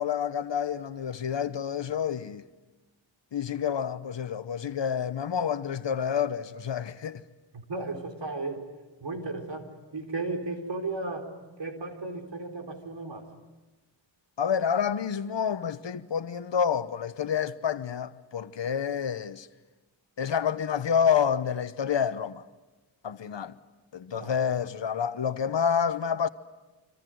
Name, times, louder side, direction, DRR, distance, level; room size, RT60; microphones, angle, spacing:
voice 1, 0.0-2.4 3.3-7.2 14.4-19.5 20.2-22.4 23.0-23.5 23.9-26.3, left 7 dB, 65° left, 1.1 m, -28 dB
voice 2, 7.5-8.7 9.0-11.3 11.6-13.3 24.1-24.3, right 3 dB, 60° right, 4.2 m, -35 dB
26.0 x 26.0 x 7.9 m
cardioid pair, 65°, 47 cm